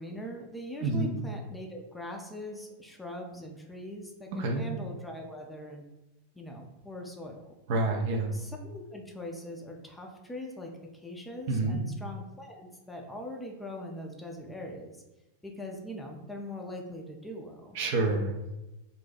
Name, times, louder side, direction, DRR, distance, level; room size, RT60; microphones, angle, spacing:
voice 1, 0.0-5.8 6.3-7.6 8.3-15.0 15.4-17.8, left 1 dB, 5° left, 1 dB, 0.5 m, -42 dB
voice 2, 0.8-1.1 4.4-4.7 7.7-8.3 11.5-11.8 17.7-18.3, right 2 dB, 50° right, 2 dB, 0.5 m, -28 dB
2.6 x 2.2 x 4.0 m, 1.0 s
figure-of-eight pair, 90°, 0 cm